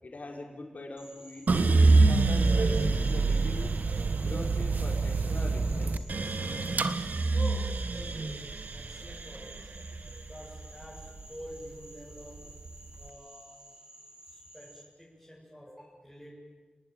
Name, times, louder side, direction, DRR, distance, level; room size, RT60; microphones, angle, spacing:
voice 1, 0.0-1.5 2.0-3.7 4.2-6.0, left 2 dB, 55° left, 1 dB, 4.8 m, -42 dB
Frog, 1.0-14.8, right 1 dB, 25° right, 4.6 m, -53 dB
sound 1, 1.5-11.7 12.1-12.9, right 3 dB, 70° right, 1.3 m, -26 dB
voice 2, 7.3-9.8 10.2-12.5 13.0-13.7 14.2-16.4, equal, ahead, -3 dB, 7.6 m, -47 dB
29.5 x 19.0 x 9.5 m, 1.4 s
wide cardioid pair, 95°, 3 cm